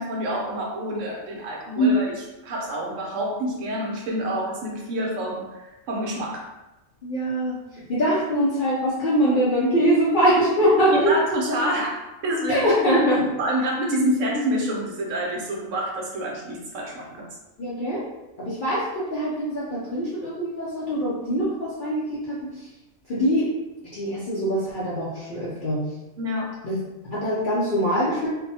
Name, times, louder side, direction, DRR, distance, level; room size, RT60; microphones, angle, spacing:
voice 1, 0.0-2.1 2.4-6.5 10.9-12.7 13.4-17.2 26.2-26.5, equal, 70° right, -2 dB, 0.9 m, -27 dB
voice 2, 7.0-11.1 12.5-13.4 17.6-18.0 18.4-22.5 23.1-23.5 23.9-25.8 26.6-26.7 27.0-28.3, equal, 55° left, -8 dB, 0.6 m, -23 dB
2.6 x 2.1 x 2.7 m, 1.0 s
omnidirectional pair, 1.4 m